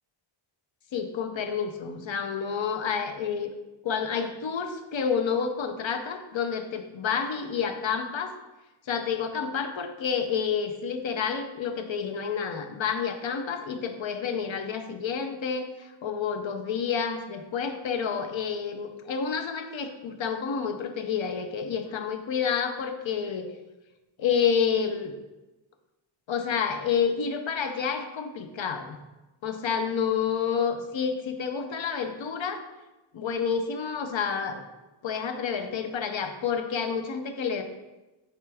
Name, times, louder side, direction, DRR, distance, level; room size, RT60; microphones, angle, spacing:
voice 1, 0.9-3.5 3.8-8.3 8.9-23.5 24.2-25.1 26.3-29.0 29.4-32.6 33.1-34.6 35.0-37.6, left 6 dB, 65° left, 6 dB, 0.7 m, -29 dB
8.8 x 3.4 x 3.4 m, 1.1 s
wide cardioid pair, 155°, 49 cm